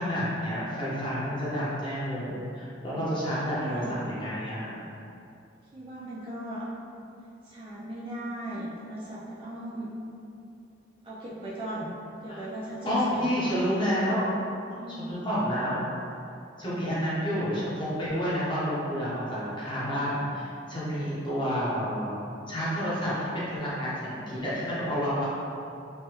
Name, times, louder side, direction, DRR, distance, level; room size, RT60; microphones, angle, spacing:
voice 1, 0.0-4.8 12.3-12.4 12.8-14.3 15.0-15.8 16.6-22.1 22.5-25.3, equal, 25° left, -9 dB, 0.8 m, -29 dB
voice 2, 3.3-4.1 5.7-6.7 7.4-9.9 11.0-11.9 12.2-13.6 14.8-15.2, right 1 dB, 30° right, -8 dB, 0.4 m, -38 dB
3.3 x 2.2 x 2.9 m, 2.6 s
head